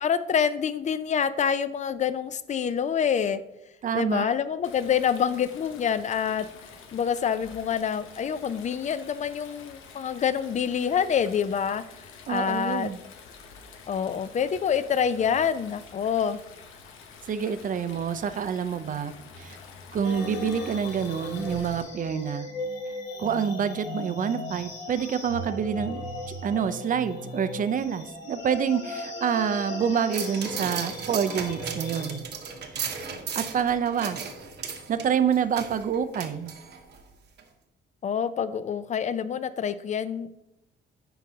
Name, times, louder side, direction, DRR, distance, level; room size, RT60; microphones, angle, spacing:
voice 1, 0.0-3.4 3.9-6.5 6.9-11.8 12.3-12.9 13.9-16.4 38.0-40.3, left 7 dB, 35° left, 14 dB, 0.4 m, -26 dB
voice 2, 3.8-4.3 12.3-13.0 17.2-19.6 19.9-22.5 23.2-26.0 26.4-32.2 32.7-32.9 33.4-34.2 34.9-36.5, right 7 dB, 40° right, 12 dB, 0.5 m, -27 dB
Stream, 4.6-21.8, left 5 dB, 90° left, 0.8 m, -48 dB
sound 1, 20.0-32.2, left 1 dB, 65° left, 1.7 m, -37 dB
sound 2, 30.1-37.0 37.4-37.5, right 6 dB, 60° right, 0.9 m, -36 dB
10.0 x 3.9 x 2.8 m, 0.87 s
cardioid pair, 90°, 20 cm